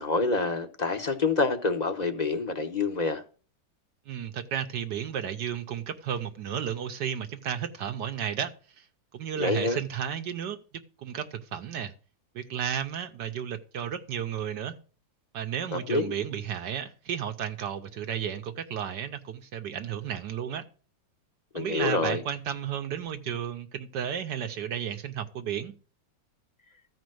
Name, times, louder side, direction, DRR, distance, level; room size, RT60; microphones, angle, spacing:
voice 1, 0.0-3.2 9.4-9.8 15.7-16.1 21.5-22.2, left 3 dB, 30° left, 0.8 m, -27 dB
voice 2, 4.1-8.8 9.1-10.6 11.0-11.9 12.3-14.8 15.3-20.6 21.5-25.7, right 9 dB, 65° right, 1.3 m, -33 dB
14.0 x 5.2 x 7.7 m
omnidirectional pair, 2.2 m